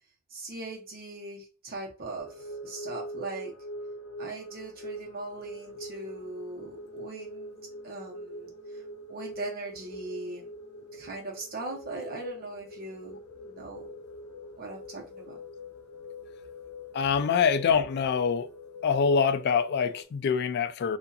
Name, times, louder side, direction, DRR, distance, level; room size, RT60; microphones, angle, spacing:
voice 1, 0.3-3.5 4.2-7.6 7.8-8.8 9.1-10.5 10.9-13.2 13.4-13.9 14.5-15.4, right 2 dB, 45° right, 0.9 m, -40 dB
sound 1, 2.2-20.0, equal, 70° left, 0.7 m, -43 dB
voice 2, 16.9-18.5 18.8-21.0, left 6 dB, 50° left, 0.3 m, -25 dB
2.7 x 2.4 x 2.3 m
head